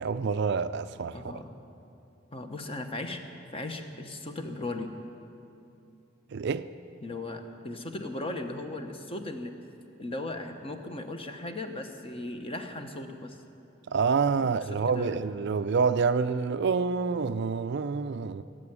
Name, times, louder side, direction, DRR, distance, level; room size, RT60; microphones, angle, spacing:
voice 1, 0.0-1.2 6.3-6.7 13.9-18.4, right 5 dB, 55° right, 0.4 m, -27 dB
voice 2, 1.1-1.5 2.3-3.2 3.5-4.9 7.0-9.5 10.0-13.4 14.4-15.2, left 2 dB, 30° left, 1.0 m, -37 dB
17.5 x 7.7 x 9.7 m
head